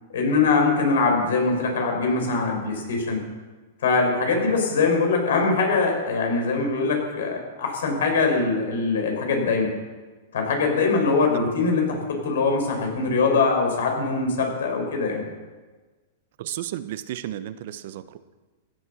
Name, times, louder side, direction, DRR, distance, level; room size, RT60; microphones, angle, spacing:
voice 1, 0.1-3.2 3.8-9.7 10.3-15.2, left 4 dB, 80° left, 3 dB, 5.1 m, -22 dB
voice 2, 16.4-18.2, right 12 dB, 60° right, 13 dB, 0.9 m, -33 dB
16.0 x 11.0 x 6.4 m, 1.3 s
hypercardioid pair, 130°, 0 cm